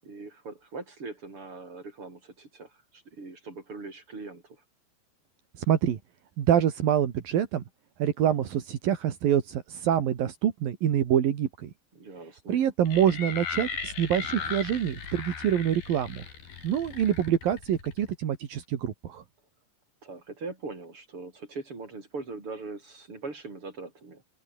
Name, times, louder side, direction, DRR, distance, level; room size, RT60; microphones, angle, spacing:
voice 1, 0.0-4.6 11.9-12.7 20.0-24.2, right 3 dB, 35° right, 7.4 m, -41 dB
voice 2, 5.7-6.0 6.4-7.6 8.0-11.7 12.5-16.2 16.6-19.2, right 10 dB, 75° right, 3.9 m, -26 dB
sound 1, 12.9-18.1, left 7 dB, 80° left, 5.6 m, -37 dB
open air
omnidirectional pair, 4.2 m